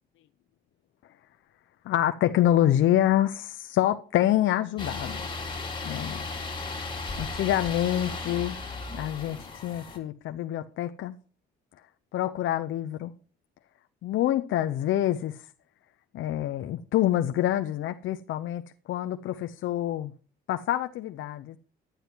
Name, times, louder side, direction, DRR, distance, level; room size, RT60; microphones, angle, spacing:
voice 1, 1.8-5.2 5.8-6.2 7.2-8.6 8.9-9.4 9.6-11.1 12.1-13.1 14.0-15.4 16.1-18.6 18.9-20.1 20.5-21.6, left 12 dB, 75° left, 0.8 m, -26 dB
sound 1, 4.8-10.0, left 3 dB, 25° left, 3.2 m, -35 dB
11.5 x 9.4 x 4.6 m
cardioid pair, 90°, 20 cm